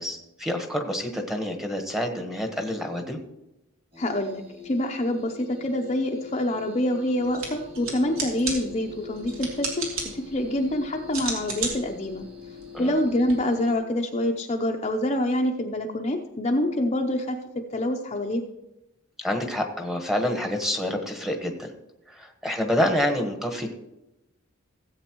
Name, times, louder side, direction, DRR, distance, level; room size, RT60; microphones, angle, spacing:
voice 1, 0.0-3.2 12.7-12.9 19.2-21.7 22.1-23.7, left 1 dB, ahead, 3 dB, 1.2 m, -27 dB
sound 1, 3.9-13.7, left 6 dB, 25° right, 2.1 m, -45 dB
voice 2, 4.0-12.2 12.8-17.4 17.7-18.4, left 1 dB, 30° left, 2 dB, 0.7 m, -26 dB
sound 2, 7.2-13.3, right 3 dB, 70° right, 2.9 m, -35 dB
16.5 x 8.1 x 3.0 m, 0.92 s
head